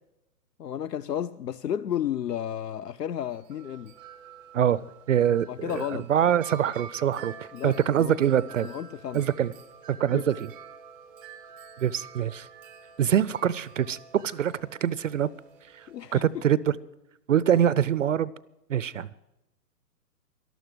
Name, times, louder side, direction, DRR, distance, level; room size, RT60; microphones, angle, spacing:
voice 1, 0.6-3.9 5.5-6.1 7.5-8.2 8.6-9.2 10.1-10.3 15.9-16.2, left 10 dB, 85° left, 0.6 m, -32 dB
Wind chime, 3.2-16.6, right 7 dB, 5° right, 0.5 m, -48 dB
voice 2, 5.1-8.7 9.1-9.5 9.9-10.5 11.8-12.5 13.0-15.3 15.7-16.8 17.3-18.3 18.7-19.1, right 9 dB, 55° right, 0.5 m, -24 dB
12.5 x 12.0 x 7.7 m
figure-of-eight pair, 125°, 48 cm